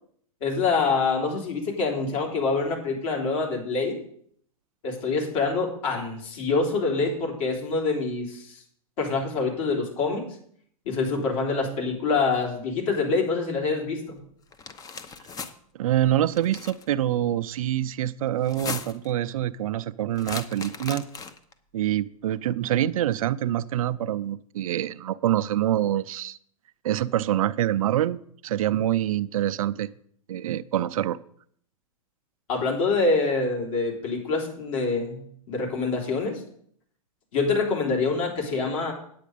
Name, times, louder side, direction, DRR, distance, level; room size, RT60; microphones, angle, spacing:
voice 1, 0.4-4.0 4.8-8.6 9.0-10.3 10.9-14.2 32.5-36.4 37.3-38.9, left 4 dB, 60° left, -1 dB, 3.5 m, -26 dB
sound 1, 14.5-15.5 16.3-16.8 18.4-19.1 20.2-21.5, left 5 dB, 20° left, 0.7 m, -37 dB
voice 2, 15.7-21.0 21.7-26.4 26.8-28.2 28.4-29.9 30.3-31.2, right 12 dB, 70° right, 13 dB, 0.5 m, -25 dB
9.4 x 8.3 x 5.1 m, 0.64 s
hypercardioid pair, 115°, 19 cm